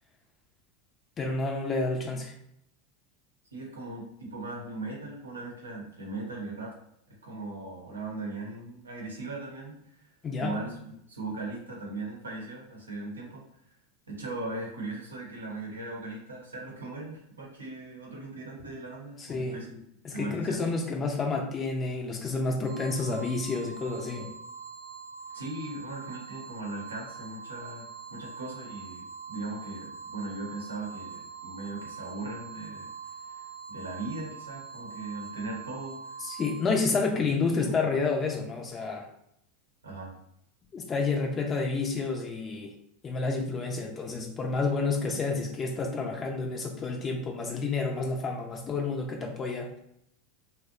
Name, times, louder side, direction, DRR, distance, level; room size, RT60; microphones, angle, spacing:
voice 1, 1.2-2.3 10.2-10.6 19.2-19.6 20.0-24.3 36.2-39.1 40.7-42.7 43.0-49.7, left 4 dB, 30° left, 1 dB, 0.4 m, -30 dB
voice 2, 3.5-6.8 7.1-10.1 10.3-13.4 14.1-19.8 20.1-20.7 25.3-32.9 33.3-36.3 37.1-37.2 37.6-38.0 39.8-40.1, right 2 dB, 90° right, -1 dB, 0.7 m, -39 dB
sound 1, 22.6-36.6, right 6 dB, 50° right, 0.6 m, -43 dB
2.6 x 2.0 x 2.4 m, 0.75 s
hypercardioid pair, 90°, 0 cm